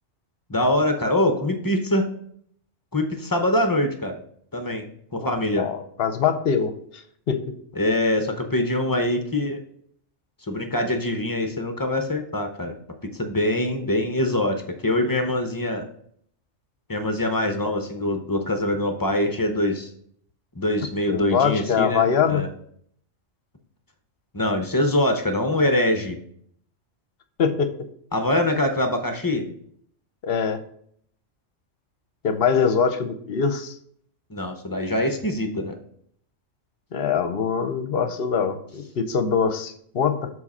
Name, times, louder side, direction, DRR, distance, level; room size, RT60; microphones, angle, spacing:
voice 1, 0.5-2.1 2.9-4.2 4.5-4.8 5.1-5.7 7.8-9.6 10.5-12.8 13.1-15.9 16.9-19.9 20.6-22.5 24.3-26.2 28.1-29.4 34.3-35.8, left 1 dB, 25° left, 5 dB, 0.5 m, -24 dB
voice 2, 5.6-7.4 21.1-22.4 27.4-27.7 30.2-30.6 32.2-33.7 36.9-40.3, left 6 dB, 55° left, 9 dB, 0.8 m, -23 dB
7.3 x 4.2 x 4.2 m, 0.63 s
omnidirectional pair, 1.3 m